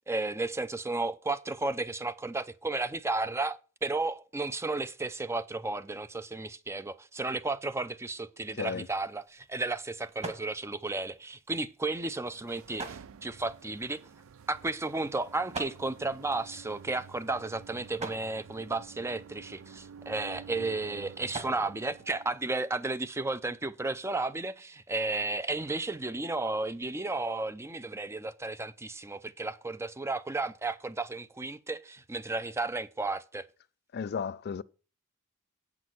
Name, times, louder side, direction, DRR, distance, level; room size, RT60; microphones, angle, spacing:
voice 1, 0.0-14.0 14.5-33.4, right 2 dB, 10° right, 0.5 m, -33 dB
voice 2, 8.5-8.9 33.9-34.6, left 6 dB, 50° left, 0.4 m, -34 dB
sound 1, 8.6-22.9, right 3 dB, 30° right, 1.6 m, -48 dB
sound 2, 12.1-22.4, right 6 dB, 65° right, 0.5 m, -50 dB
8.4 x 6.0 x 7.8 m
head